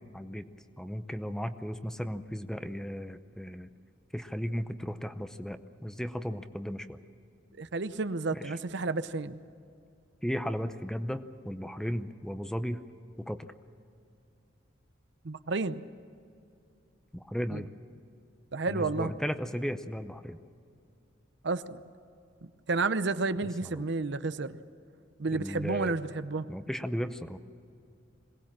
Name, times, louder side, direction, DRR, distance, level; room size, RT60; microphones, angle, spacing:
voice 1, 0.1-0.4 0.8-3.7 4.1-7.0 8.3-8.6 10.2-12.8 13.2-13.5 17.1-17.7 18.7-20.4 23.6-23.8 25.3-25.9 26.5-27.4, equal, 5° left, 10 dB, 0.7 m, -35 dB
voice 2, 7.6-9.4 15.2-15.8 17.5-17.6 18.5-19.1 21.4-21.8 22.7-24.6 25.2-26.5, right 3 dB, 65° right, 13 dB, 0.7 m, -31 dB
22.0 x 18.5 x 7.4 m, 2.5 s
head